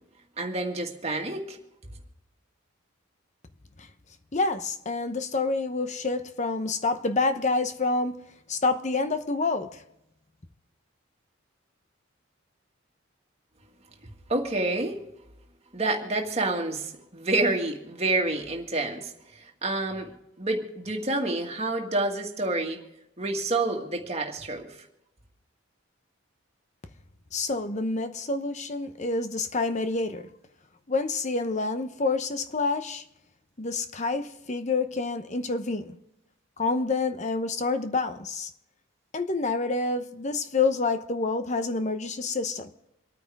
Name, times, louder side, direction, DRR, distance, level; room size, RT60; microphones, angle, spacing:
voice 1, 0.4-1.6 14.3-15.0 15.7-20.1 20.4-22.8 23.2-24.8, right 2 dB, 30° right, 2.0 m, -28 dB
voice 2, 4.3-8.2 8.5-9.8 27.3-30.3 30.9-33.0 33.6-36.0 36.6-38.5 39.1-42.7, left 3 dB, 35° left, 0.8 m, -28 dB
27.5 x 9.2 x 3.6 m
head